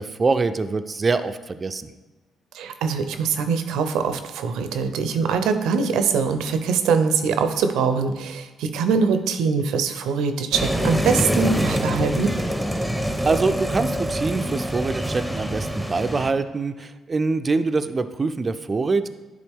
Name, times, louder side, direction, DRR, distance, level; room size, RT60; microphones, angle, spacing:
voice 1, 0.0-1.9 13.3-19.1, right 3 dB, 30° right, 9 dB, 0.4 m, -24 dB
voice 2, 2.5-12.3, right 5 dB, 85° right, 8 dB, 0.6 m, -23 dB
sound 1, 10.5-16.3, equal, ahead, 0.7 m, -25 dB
10.5 x 3.8 x 3.6 m, 1.2 s
cardioid pair, 90°, 0 cm